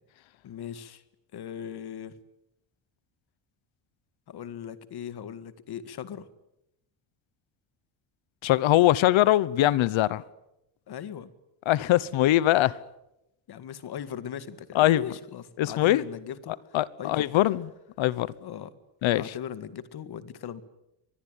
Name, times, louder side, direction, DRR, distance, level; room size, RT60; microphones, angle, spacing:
voice 1, 0.4-1.0 1.3-2.2 4.3-6.3 10.9-11.3 13.5-17.3 18.4-18.7 19.1-20.6, left 9 dB, 50° left, 1.9 m, -39 dB
voice 2, 8.4-10.2 11.7-12.8 14.7-15.0 15.6-16.0 16.7-17.7 18.0-18.3 19.0-19.3, left 14 dB, 70° left, 1.1 m, -22 dB
25.0 x 20.5 x 9.2 m
cardioid pair, 155°, 49 cm